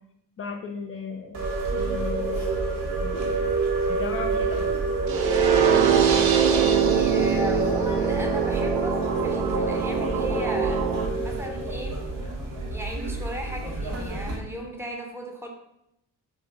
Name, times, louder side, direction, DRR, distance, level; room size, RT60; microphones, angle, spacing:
voice 1, 0.4-1.4 1.7-2.4 3.0-3.2 3.9-4.7, left 5 dB, 30° left, 3 dB, 0.4 m, -35 dB
sound 1, 1.3-14.4, right 3 dB, 75° right, 0.9 m, -28 dB
sound 2, 5.1-11.1, right 7 dB, 50° right, 0.5 m, -23 dB
voice 2, 6.1-10.8 11.2-12.0 12.7-15.5, right 1 dB, 5° right, 1 dB, 0.7 m, -36 dB
2.8 x 2.1 x 3.6 m, 0.82 s
hypercardioid pair, 40°, 47 cm